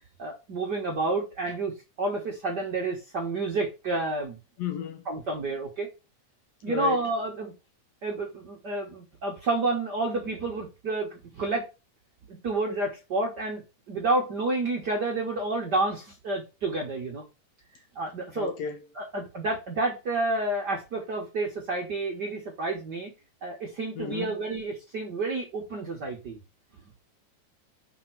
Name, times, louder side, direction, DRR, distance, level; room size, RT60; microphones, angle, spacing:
voice 1, 0.2-4.4 5.1-5.9 6.6-7.5 8.0-11.7 12.3-13.6 13.9-17.2 17.9-18.5 18.9-23.1 23.4-26.4, right 2 dB, 55° right, 1.2 m, -30 dB
voice 2, 4.6-5.1 6.7-7.0 18.4-18.8 24.0-24.4, left 7 dB, 70° left, 1.8 m, -33 dB
5.5 x 3.7 x 5.9 m
omnidirectional pair, 3.4 m